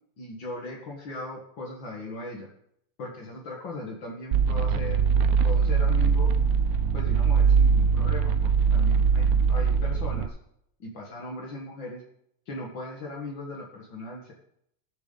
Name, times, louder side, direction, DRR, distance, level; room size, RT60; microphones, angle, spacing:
voice 1, 0.2-2.5 3.0-5.1 5.4-6.3 6.9-10.4 10.8-12.0 12.5-14.3, left 2 dB, 65° left, -1 dB, 2.4 m, -38 dB
sound 1, 4.3-10.3, right 6 dB, 85° right, 0.8 m, -22 dB
19.0 x 7.1 x 4.0 m, 0.73 s
omnidirectional pair, 2.3 m